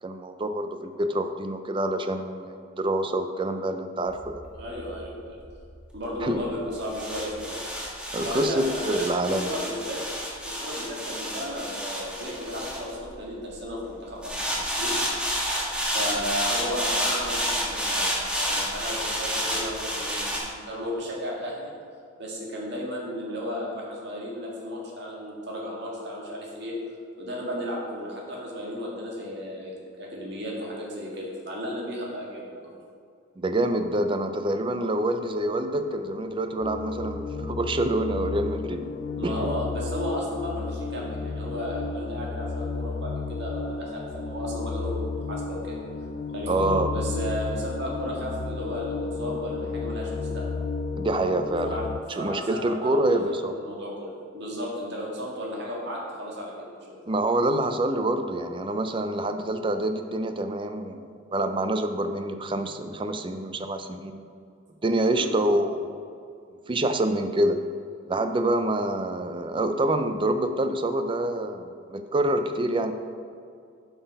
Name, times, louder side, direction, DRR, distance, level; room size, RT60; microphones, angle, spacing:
voice 1, 0.0-4.4 6.2-6.4 8.1-9.5 16.2-16.3 33.4-38.8 39.2-39.3 46.5-46.9 51.0-51.9 52.2-53.5 57.1-61.0 61.3-64.2 64.8-66.0 66.7-67.6 68.1-72.9, right 1 dB, 25° right, 8 dB, 0.5 m, -26 dB
sound 1, 4.1-13.5 14.2-20.4, equal, 5° right, 1.5 m, -30 dB
voice 2, 4.6-5.4 5.9-7.6 8.2-9.0 9.4-10.0 10.4-15.0 15.8-21.7 22.2-26.7 27.2-32.8 39.2-45.8 46.3-50.5 51.6-51.8 52.1-53.2 53.5-56.9 65.1-65.4, equal, 55° right, -4 dB, 1.9 m, -34 dB
sound 2, 35.1-52.0, left 4 dB, 45° left, 0.3 m, -33 dB
8.0 x 6.0 x 5.3 m, 2.3 s
head